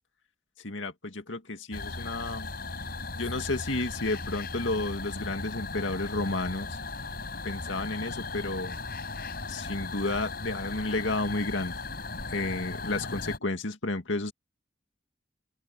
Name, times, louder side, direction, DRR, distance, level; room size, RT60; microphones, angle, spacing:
voice 1, 0.6-2.5 3.1-6.8 7.4-8.8 9.5-11.7 12.3-14.3, left 2 dB, 75° left, 2.2 m, -32 dB
sound 1, 1.7-13.4, left 3 dB, 50° left, 7.3 m, -37 dB
open air
head